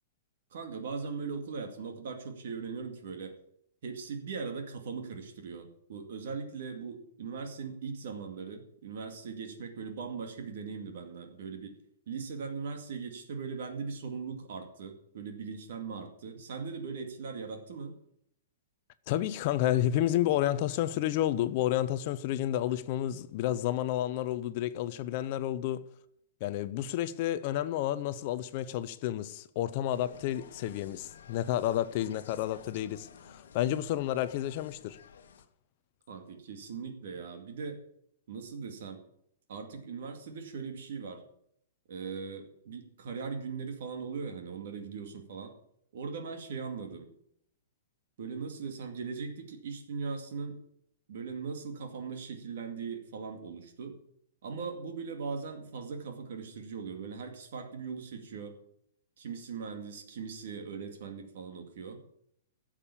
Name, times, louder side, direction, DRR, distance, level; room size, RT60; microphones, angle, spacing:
voice 1, 0.5-3.4 3.8-11.8 12.1-17.9 36.1-37.8 38.3-39.0 39.5-41.2 41.9-45.5 45.9-47.1 48.2-50.6 51.1-53.9 54.4-58.6 59.2-62.0, right 5 dB, 50° right, 2.2 m, -39 dB
voice 2, 19.1-25.8 26.4-35.0, left 12 dB, 30° left, 0.6 m, -30 dB
Insect, 29.9-35.5, left 7 dB, 65° left, 1.3 m, -53 dB
11.5 x 7.4 x 8.5 m
hypercardioid pair, 175°, 0 cm